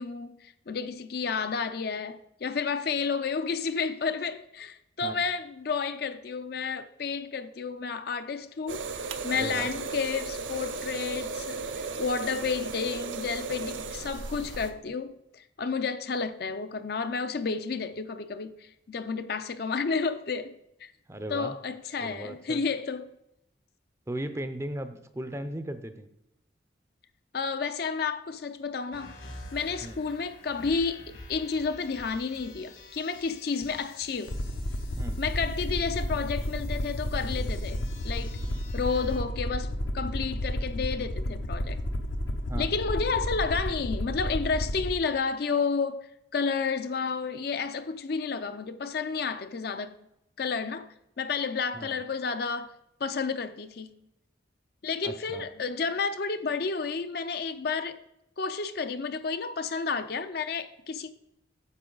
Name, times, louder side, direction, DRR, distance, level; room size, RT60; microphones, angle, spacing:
voice 1, 0.0-8.9 9.2-20.9 21.3-23.1 27.3-29.1 29.5-34.4 35.2-38.4 38.7-41.8 42.6-49.9 50.4-52.7 53.0-53.9 54.8-58.0 58.4-61.1, left 5 dB, 55° left, 0.5 m, -31 dB
sound 1, 8.7-14.7, right 4 dB, 85° right, 0.7 m, -35 dB
voice 2, 9.3-9.7 21.1-21.5 22.0-22.6 24.1-26.1 29.8-30.0 35.0-35.2 42.5-42.8 51.7-52.0 55.0-55.4, right 1 dB, 15° right, 0.5 m, -37 dB
sound 2, 28.9-39.2, left 2 dB, 70° left, 1.8 m, -47 dB
Aircraft, 34.3-44.9, left 1 dB, 85° left, 0.9 m, -32 dB
9.6 x 6.9 x 3.9 m
head